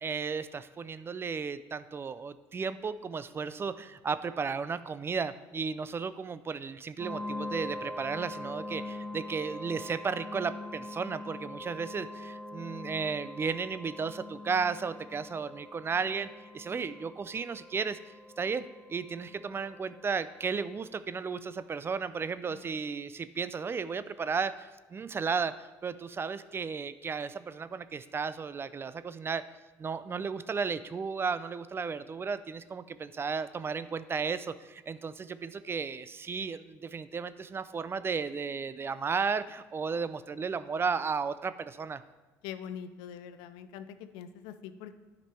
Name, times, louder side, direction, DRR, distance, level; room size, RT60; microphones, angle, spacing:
voice 1, 0.0-16.3 16.5-18.0 18.4-18.6 18.9-25.5 25.8-29.4 29.8-42.0, right 5 dB, 30° right, 14 dB, 0.4 m, -34 dB
sound 1, 7.0-20.6, left 1 dB, 15° right, 2.0 m, -43 dB
voice 2, 42.4-45.0, left 8 dB, 85° left, 11 dB, 0.5 m, -43 dB
10.0 x 5.2 x 4.4 m, 1.2 s
supercardioid pair, 75°, 8 cm